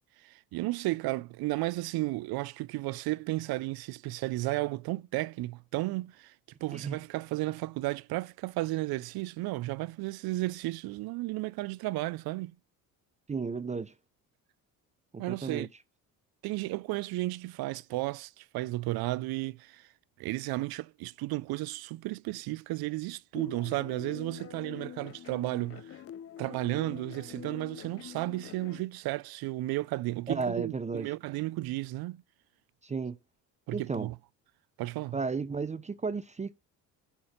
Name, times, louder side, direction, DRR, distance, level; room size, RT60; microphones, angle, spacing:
voice 1, 0.2-6.3 6.6-12.5 15.2-15.7 16.4-19.9 20.2-26.0 26.4-32.2 33.7-34.2 34.8-35.2, right 19 dB, 65° right, 0.5 m, -33 dB
voice 2, 13.3-13.9 15.1-15.7 30.3-31.1 32.8-33.2 33.7-34.1 35.1-36.5, right 4 dB, 20° right, 0.5 m, -33 dB
sound 1, 23.3-28.8, left 9 dB, 35° left, 0.5 m, -45 dB
7.2 x 2.9 x 5.0 m
supercardioid pair, 85°, 40 cm